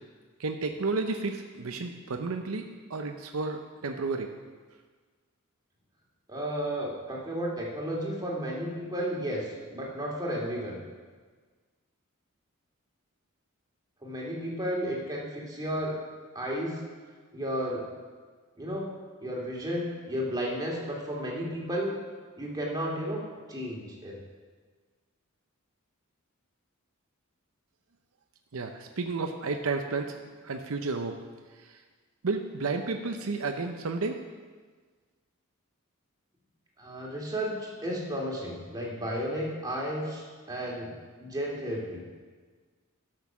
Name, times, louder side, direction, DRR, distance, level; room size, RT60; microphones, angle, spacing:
voice 1, 0.4-4.3 28.5-31.2 31.5-31.8 32.2-34.2, right 3 dB, 80° right, 5 dB, 0.7 m, -32 dB
voice 2, 6.3-10.8 14.0-16.0 16.3-16.8 17.3-17.8 18.6-18.9 19.2-22.0 22.4-23.2 23.5-24.2 36.8-40.9 41.2-42.0, equal, 20° right, -3 dB, 2.2 m, -33 dB
12.0 x 6.5 x 6.0 m, 1.5 s
head